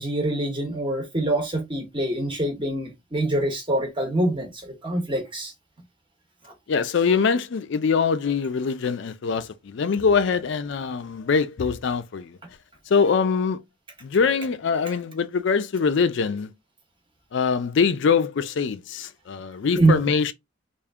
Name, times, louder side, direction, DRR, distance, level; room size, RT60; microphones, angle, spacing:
voice 1, 0.0-5.5 6.4-6.5 19.7-20.0, right 2 dB, 25° right, 1.1 m, -25 dB
voice 2, 6.7-12.4 12.9-13.6 14.0-16.5 17.3-20.3, left 5 dB, 65° left, 0.4 m, -23 dB
3.5 x 2.5 x 3.5 m
head